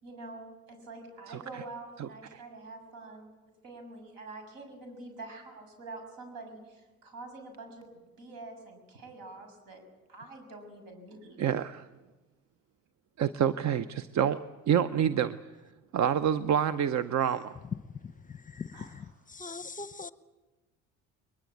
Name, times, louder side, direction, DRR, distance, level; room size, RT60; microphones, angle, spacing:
voice 1, 0.0-3.3 3.6-7.9 8.2-9.8 10.1-11.5 18.7-19.1, right 2 dB, 75° right, 6 dB, 6.8 m, -46 dB
voice 2, 1.3-1.6 2.0-2.4 11.4-11.9 13.2-15.4 15.9-17.6, right 9 dB, 50° right, 14 dB, 0.8 m, -28 dB
voice 3, 18.0-20.1, left 4 dB, 25° left, 13 dB, 0.9 m, -42 dB
22.0 x 21.5 x 8.6 m, 1.2 s
hypercardioid pair, 65°, 34 cm